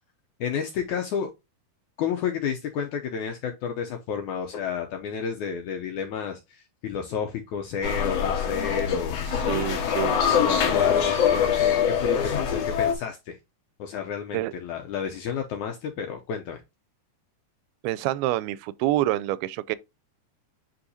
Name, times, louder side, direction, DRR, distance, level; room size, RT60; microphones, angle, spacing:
voice 1, 0.4-1.3 2.0-9.2 10.4-13.4 13.8-16.6, left 7 dB, 75° left, 1.8 m, -31 dB
sound 1, 7.8-12.9, left 8 dB, 60° left, 1.9 m, -24 dB
voice 2, 9.3-10.2 14.3-14.5 17.8-19.8, right 15 dB, 90° right, 2.5 m, -27 dB
9.8 x 3.8 x 2.7 m
omnidirectional pair, 4.3 m